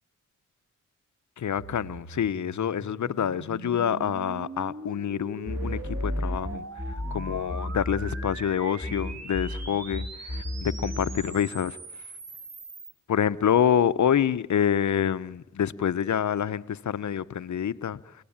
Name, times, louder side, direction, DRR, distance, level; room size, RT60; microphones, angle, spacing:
voice 1, 1.4-6.6 7.1-11.8 13.1-18.1, left 8 dB, 65° left, 1.0 m, -27 dB
sound 1, 1.6-12.9, right 4 dB, 55° right, 3.4 m, -42 dB
sound 2, 5.5-8.5 8.8-11.4, left 1 dB, 5° right, 6.2 m, -33 dB
28.5 x 19.0 x 8.8 m
cardioid pair, 55°, 31 cm